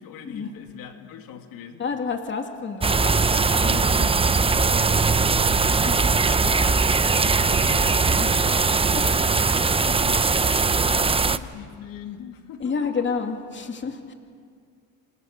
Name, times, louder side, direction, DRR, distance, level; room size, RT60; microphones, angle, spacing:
voice 1, 0.0-1.8 6.0-9.3 9.8-13.0, left 8 dB, 70° left, 5 dB, 2.6 m, -42 dB
voice 2, 1.8-4.1 4.4-5.1 5.8-6.1 8.2-8.6 8.9-9.1 12.6-14.1, left 5 dB, 30° left, 4 dB, 2.5 m, -31 dB
sound 1, 2.8-11.4, right 4 dB, 15° right, 0.8 m, -20 dB
28.0 x 27.0 x 6.7 m, 2.1 s
cardioid pair, 105°, 37 cm